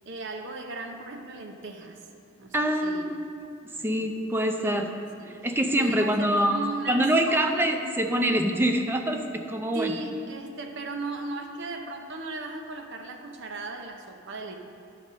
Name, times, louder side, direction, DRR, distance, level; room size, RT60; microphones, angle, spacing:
voice 1, 0.0-2.0 2.4-3.1 3.4-3.5 3.8-4.1 4.6-5.4 5.8-7.7 9.7-14.6, right 2 dB, 55° right, 4 dB, 0.8 m, -37 dB
voice 2, 2.5-3.2 3.8-4.9 5.4-6.6 6.9-9.9, right 1 dB, 10° right, 4 dB, 0.5 m, -25 dB
10.5 x 4.2 x 6.2 m, 2.5 s
head